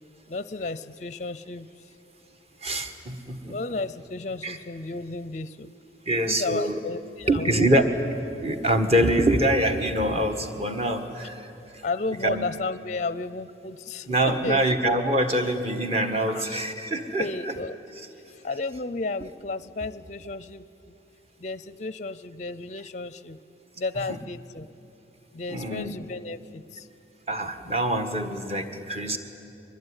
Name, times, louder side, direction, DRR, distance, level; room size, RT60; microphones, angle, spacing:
voice 1, 0.3-1.7 3.4-5.7 6.2-7.7 11.8-14.6 16.3-16.6 17.2-17.8 18.4-20.9 21.4-23.4 23.8-24.7 25.3-26.9, left 3 dB, 40° left, 15 dB, 0.5 m, -33 dB
voice 2, 2.6-3.5 4.4-4.6 6.1-6.8 7.3-7.9 8.4-11.5 12.2-12.5 14.1-17.5 24.0-24.1 25.5-26.0 27.3-29.2, right 1 dB, 35° right, 6 dB, 1.5 m, -25 dB
23.0 x 21.0 x 9.7 m, 2.8 s
head